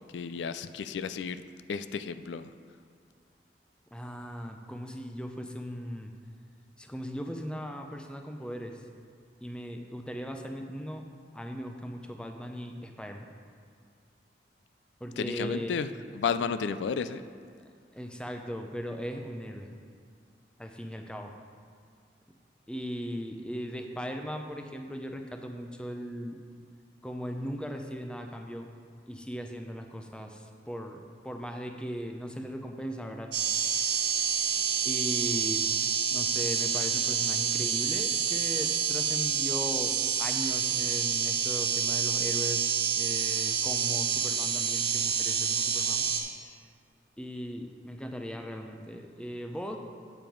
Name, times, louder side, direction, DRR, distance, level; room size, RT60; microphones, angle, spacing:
voice 1, 0.0-1.4 1.7-2.5 15.2-17.2, left 6 dB, 90° left, 12 dB, 0.3 m, -32 dB
voice 2, 3.9-6.1 6.8-8.8 9.4-11.1 11.3-13.3 15.0-15.8 17.9-19.7 20.6-21.3 22.7-26.4 27.0-28.7 29.1-33.3 34.8-46.1 47.2-49.8, equal, 5° left, 4 dB, 0.5 m, -38 dB
sound 1, 33.3-46.2, right 7 dB, 90° right, 1.2 m, -28 dB
8.9 x 6.9 x 4.6 m, 2.2 s
head